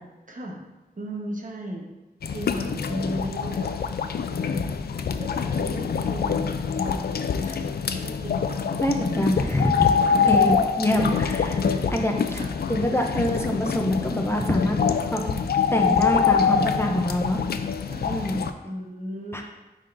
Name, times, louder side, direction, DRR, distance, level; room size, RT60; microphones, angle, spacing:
voice 1, 0.3-0.6 1.0-1.9 2.3-3.7 4.4-4.7 5.2-8.8 9.6-10.6 10.9-11.2 11.6-12.5 17.8-18.2 18.6-19.4, equal, 55° right, -1 dB, 1.1 m, -36 dB
sound 1, 2.2-18.5, left 6 dB, 80° left, 0.4 m, -25 dB
voice 2, 8.8-9.9 10.3-11.6 11.9-12.4 12.7-14.8 15.1-15.2 15.7-17.4 18.0-18.4 19.3-19.4, equal, 15° left, 2 dB, 0.5 m, -25 dB
9.6 x 3.8 x 2.6 m, 1.0 s
wide cardioid pair, 110°, 16 cm